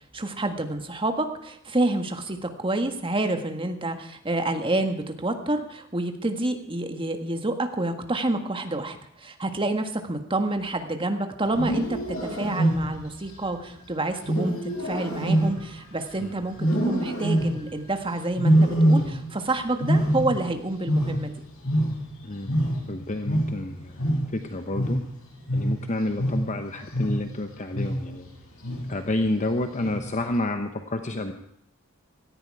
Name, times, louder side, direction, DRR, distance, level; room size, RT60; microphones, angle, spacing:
voice 1, 0.1-21.3, right 2 dB, 25° right, 6 dB, 1.6 m, -28 dB
Wild animals, 11.5-13.2 14.2-16.1 16.6-17.8 18.4-19.4 19.7-22.2 22.5-27.4 27.7-28.2 28.6-29.1 29.8-30.2, right 1 dB, 85° left, 7.2 m, -25 dB
voice 2, 22.9-25.0 25.5-28.3 28.9-31.3, left 2 dB, 35° left, 7 dB, 0.9 m, -29 dB
18.0 x 14.5 x 4.8 m, 0.74 s
head